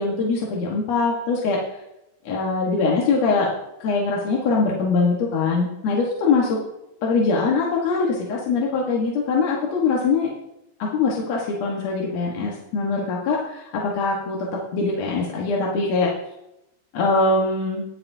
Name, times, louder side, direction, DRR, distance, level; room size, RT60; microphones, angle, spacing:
voice 1, 0.0-1.6 2.3-3.5 3.8-6.6 7.0-10.3 10.8-14.4 14.7-16.1 16.9-17.8, left 4 dB, 60° left, -3 dB, 2.0 m, -22 dB
20.0 x 6.9 x 2.7 m, 0.87 s
omnidirectional pair, 4.6 m